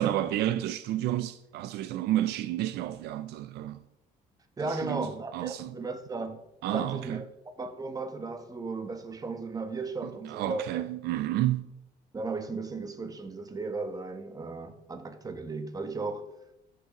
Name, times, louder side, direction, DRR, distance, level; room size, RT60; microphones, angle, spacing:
voice 1, 0.0-3.8 4.6-5.1 5.3-5.8 6.6-7.2 10.3-11.7, right 13 dB, 75° right, 0.4 m, -30 dB
voice 2, 4.6-6.4 6.7-10.6 12.1-16.3, right 3 dB, 20° right, 1.0 m, -36 dB
14.0 x 6.5 x 3.0 m
cardioid pair, 110°, 17 cm